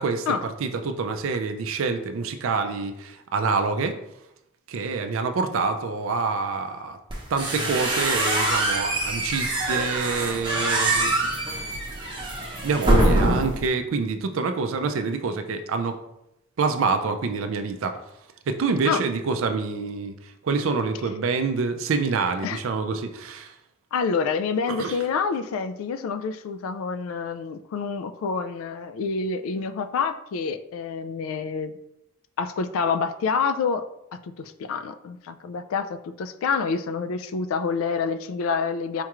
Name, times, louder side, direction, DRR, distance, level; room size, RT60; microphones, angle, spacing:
voice 1, 0.0-4.0 4.7-7.0 7.3-11.3 12.6-16.0 16.6-18.0 18.5-23.5 24.7-25.0, right 4 dB, 70° right, 8 dB, 0.4 m, -27 dB
sound 1, 7.1-13.7, right 1 dB, 25° right, 0.7 m, -24 dB
voice 2, 23.9-31.7 32.4-33.8 34.1-39.0, left 5 dB, 80° left, 11 dB, 0.3 m, -27 dB
4.4 x 2.4 x 2.9 m, 0.81 s
head